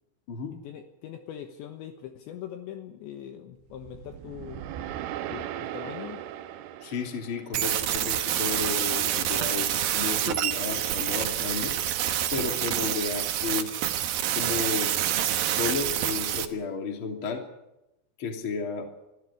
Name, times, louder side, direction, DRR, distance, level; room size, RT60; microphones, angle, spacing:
voice 1, 0.6-4.7 5.3-6.2, left 10 dB, 70° left, 6 dB, 3.1 m, -41 dB
sound 1, 3.7-8.0, right 11 dB, 90° right, 2.2 m, -38 dB
voice 2, 6.8-11.7 12.3-13.8 14.3-15.0 15.5-17.4 18.2-18.9, left 5 dB, 35° left, 4 dB, 2.7 m, -33 dB
sound 2, 7.5-16.4, right 11 dB, 70° right, 2.2 m, -27 dB
23.5 x 14.5 x 9.8 m, 0.92 s
omnidirectional pair, 5.9 m